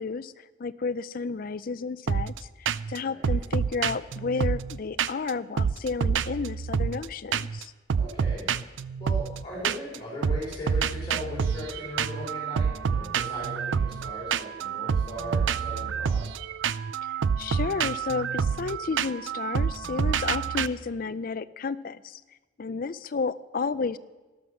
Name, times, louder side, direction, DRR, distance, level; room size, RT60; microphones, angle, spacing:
voice 1, 0.0-7.7 17.0-22.2 22.6-24.0, left 4 dB, 45° left, 16 dB, 0.4 m, -32 dB
sound 1, 2.1-2.4 2.7-3.0 3.2-5.3 5.6-7.1 7.3-7.6 7.9-10.0 10.2-20.7, right 6 dB, 75° right, 0.4 m, -28 dB
voice 2, 3.0-3.4 8.0-8.5 9.0-16.3, left 1 dB, 25° left, -6 dB, 4.1 m, -38 dB
13.0 x 12.5 x 6.3 m, 1.2 s
head